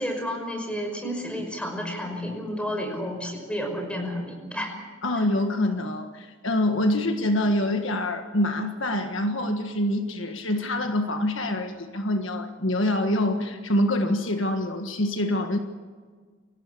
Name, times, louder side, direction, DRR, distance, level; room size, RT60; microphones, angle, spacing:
voice 1, 0.0-4.7, equal, 5° left, 3 dB, 5.7 m, -31 dB
voice 2, 5.0-15.6, left 1 dB, 65° left, 6 dB, 1.6 m, -25 dB
26.0 x 16.0 x 8.4 m, 1.5 s
head